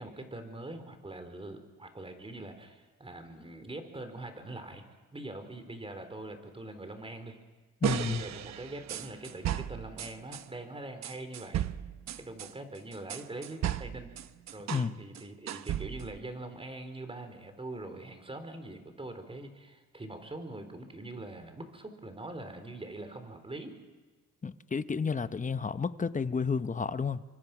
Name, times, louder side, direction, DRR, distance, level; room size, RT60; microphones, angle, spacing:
voice 1, 0.0-4.8 5.1-7.4 7.8-11.7 12.2-14.1 14.5-23.8, right 2 dB, 20° right, 7 dB, 4.1 m, -43 dB
voice 2, 7.8-8.3 14.7-15.0 24.4-27.2, left 5 dB, 25° left, 12 dB, 1.0 m, -31 dB
sound 1, 7.8-10.4 11.0-14.9 15.1-16.2, right 11 dB, 65° right, 1.0 m, -35 dB
29.0 x 24.5 x 6.1 m, 1.3 s
cardioid pair, 90°, 30 cm